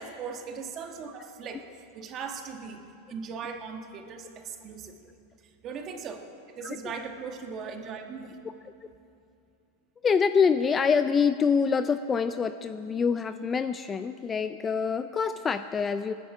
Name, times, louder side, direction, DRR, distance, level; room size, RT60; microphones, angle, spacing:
voice 1, 0.0-1.6 1.9-2.8 3.1-5.1 5.6-6.2 6.5-8.4, right 5 dB, 30° right, 4 dB, 1.4 m, -38 dB
voice 2, 10.0-16.1, left 6 dB, 15° left, 11 dB, 0.3 m, -25 dB
27.5 x 9.9 x 4.9 m, 2.6 s
supercardioid pair, 155°, 0 cm